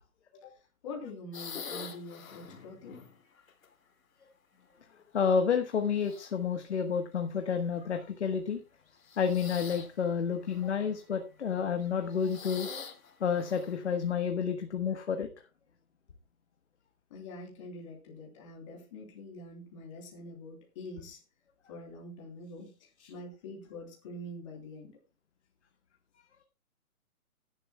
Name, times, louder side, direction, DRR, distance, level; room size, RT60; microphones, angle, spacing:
voice 1, 0.3-3.1 10.6-10.7 12.6-12.7 17.1-21.2 21.7-25.0, left 2 dB, 20° left, 1 dB, 3.2 m, -45 dB
sound 1, 1.3-3.7 4.5-5.2 5.8-6.5 7.5-7.7 8.9-10.0 10.4-11.0 11.8-13.9, left 6 dB, 70° left, 2.6 m, -46 dB
voice 2, 5.1-8.6 9.2-12.7 13.2-15.3, left 6 dB, 50° left, 6 dB, 1.3 m, -30 dB
18.0 x 11.0 x 2.3 m, 0.28 s
hypercardioid pair, 175°, 43 cm